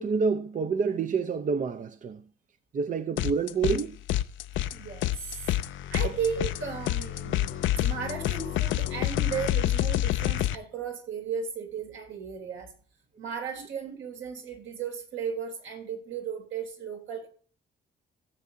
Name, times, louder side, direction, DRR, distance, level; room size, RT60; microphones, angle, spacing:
voice 1, 0.0-2.2 2.7-4.0, right 5 dB, 40° right, 0.7 m, -28 dB
sound 1, 3.2-3.8 4.1-10.6, left 13 dB, 75° left, 0.6 m, -28 dB
voice 2, 4.7-5.5 5.9-12.7 13.2-17.3, right 6 dB, 75° right, 3.2 m, -35 dB
17.0 x 7.4 x 2.8 m
cardioid pair, 90°, 20 cm